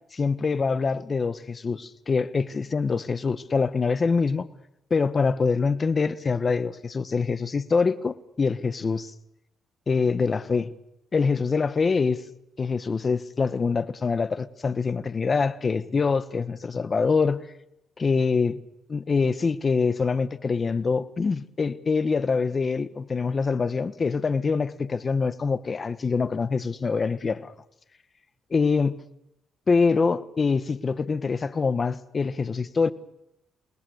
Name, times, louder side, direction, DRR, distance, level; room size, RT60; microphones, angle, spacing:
voice 1, 0.1-4.5 4.9-9.1 9.9-10.7 11.1-12.2 12.6-17.4 18.0-18.6 18.9-27.5 28.5-28.9 29.7-32.9, left 4 dB, 35° left, 1.4 m, -24 dB
27.5 x 20.0 x 6.6 m
cardioid pair, 90°, 0 cm